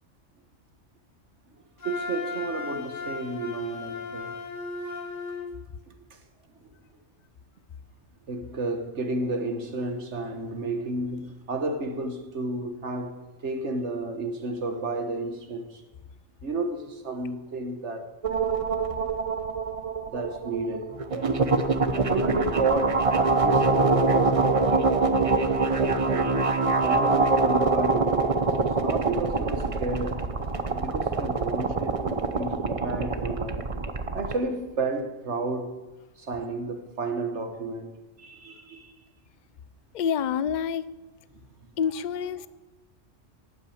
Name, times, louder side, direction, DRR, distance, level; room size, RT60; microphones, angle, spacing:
voice 1, 1.5-4.4 6.1-6.2 6.6-6.7 8.3-15.8 16.4-18.1 20.1-21.4 21.9-25.1 25.8-30.2 30.7-33.7 34.1-35.8 36.2-38.9, right 2 dB, 65° right, 1.5 m, -32 dB
Wind instrument woodwind instrument, 1.8-5.5, left 4 dB, 90° left, 2.8 m, -36 dB
sound 1, 18.2-34.3, right 3 dB, 30° right, 0.8 m, -24 dB
voice 2, 39.9-40.8 41.8-42.5, left 7 dB, 50° left, 0.5 m, -27 dB
12.0 x 8.9 x 8.7 m
omnidirectional pair, 1.3 m